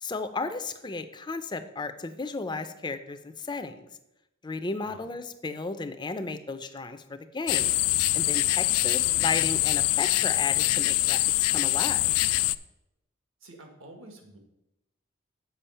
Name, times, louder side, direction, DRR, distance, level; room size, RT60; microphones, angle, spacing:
voice 1, 0.0-3.9 4.4-7.8 8.1-11.2 11.5-12.0, left 3 dB, 20° left, 9 dB, 0.5 m, -34 dB
sound 1, 7.5-12.5, left 18 dB, 85° left, 0.3 m, -24 dB
voice 2, 8.8-9.3 13.4-14.4, right 2 dB, 70° right, 4 dB, 1.5 m, -49 dB
7.1 x 5.6 x 5.6 m, 0.88 s
head